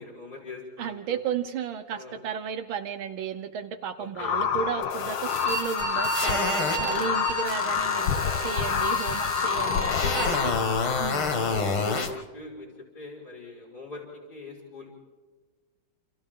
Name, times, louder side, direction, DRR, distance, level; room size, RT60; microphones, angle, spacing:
voice 1, 0.0-1.2 1.9-2.2 4.0-4.3 6.7-7.1 9.5-10.5 11.2-12.7 12.9-14.0 14.3-15.0, left 3 dB, 50° left, -4 dB, 5.9 m, -41 dB
voice 2, 0.8-10.5 11.0-11.3, right 8 dB, 75° right, 10 dB, 1.6 m, -34 dB
sound 1, 4.2-12.2, left 7 dB, 70° left, 1.6 m, -29 dB
sound 2, 4.8-7.0 7.4-12.1, left 4 dB, 85° left, 2.9 m, -30 dB
Bowed string instrument, 5.2-10.5, right 1 dB, 25° right, 2.2 m, -33 dB
29.0 x 29.0 x 3.8 m, 1.4 s
omnidirectional pair, 2.3 m